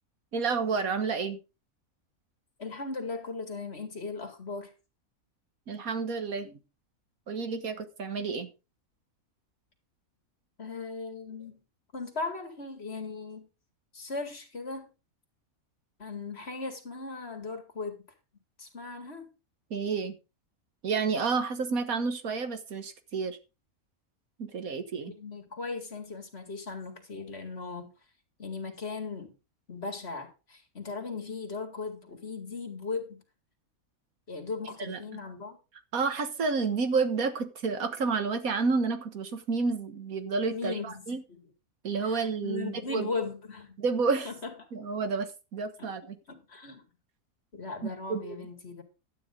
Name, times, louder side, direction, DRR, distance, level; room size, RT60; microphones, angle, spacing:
voice 1, 0.3-1.4 5.7-6.6 7.3-8.5 19.7-20.1 20.8-23.4 24.4-25.1 34.8-35.0 35.9-41.2 41.8-43.1 43.8-44.3 44.7-46.2 47.8-48.4, right 4 dB, 75° right, 1.8 m, -30 dB
voice 2, 2.6-4.7 10.6-11.6 11.9-13.5 13.9-14.9 16.0-18.0 18.6-19.3 25.1-27.9 28.4-29.3 29.7-33.2 34.3-35.6 40.5-41.4 42.0-43.7 44.2-44.5 45.8-45.9 46.3-46.9 47.5-48.8, left 4 dB, 45° left, 2.5 m, -38 dB
12.0 x 9.4 x 3.8 m
omnidirectional pair, 1.5 m